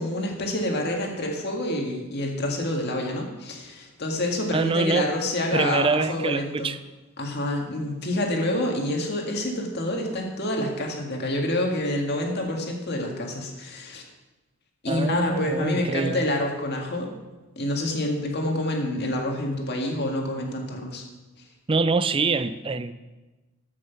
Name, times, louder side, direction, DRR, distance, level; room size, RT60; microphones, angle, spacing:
voice 1, 0.0-6.7 7.2-14.0 14.8-17.1 17.6-21.0, left 1 dB, 50° left, 1 dB, 1.9 m, -27 dB
voice 2, 4.5-5.1 5.5-6.8 14.9-16.2 21.7-22.9, right 3 dB, 25° right, 12 dB, 0.4 m, -24 dB
13.5 x 6.3 x 5.9 m, 1.1 s
head